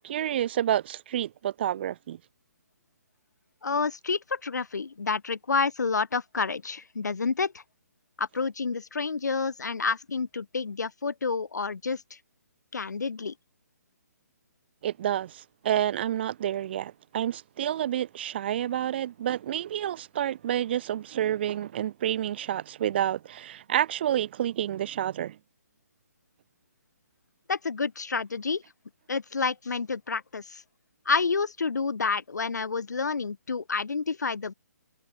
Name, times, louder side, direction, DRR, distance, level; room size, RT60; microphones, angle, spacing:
voice 1, 0.0-2.2 14.8-25.4, right 11 dB, 35° right, 0.5 m, -29 dB
voice 2, 3.6-7.6 8.2-12.0 12.7-13.3 27.5-28.6 29.1-30.6 31.1-34.5, left 4 dB, 80° left, 2.3 m, -29 dB
hypercardioid pair, 150°, 9 cm